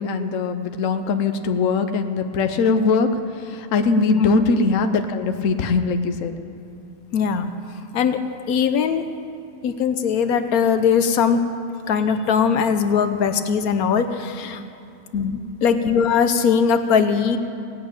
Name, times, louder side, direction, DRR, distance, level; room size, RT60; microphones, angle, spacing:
voice 1, 0.0-3.1 3.4-6.3 15.1-15.4, left 4 dB, 65° left, 7 dB, 1.2 m, -21 dB
voice 2, 7.1-7.5 7.9-8.2 8.5-9.1 9.6-11.4 11.9-14.6 15.6-17.4, left 6 dB, 90° left, 9 dB, 1.3 m, -20 dB
17.5 x 8.2 x 8.8 m, 2.7 s
omnidirectional pair, 1.5 m